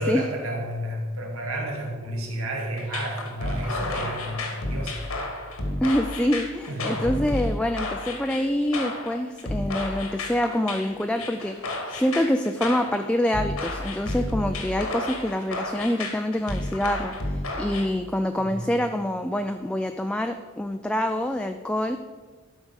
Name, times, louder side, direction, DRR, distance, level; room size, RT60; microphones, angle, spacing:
voice 1, 0.0-5.1 6.7-7.1 18.4-18.6, equal, 80° right, 0 dB, 2.2 m, -31 dB
sound 1, 2.8-17.9, left 2 dB, 90° left, 1.7 m, -31 dB
voice 2, 5.8-22.0, left 1 dB, 5° left, 6 dB, 0.3 m, -26 dB
12.0 x 5.2 x 6.3 m, 1.4 s
head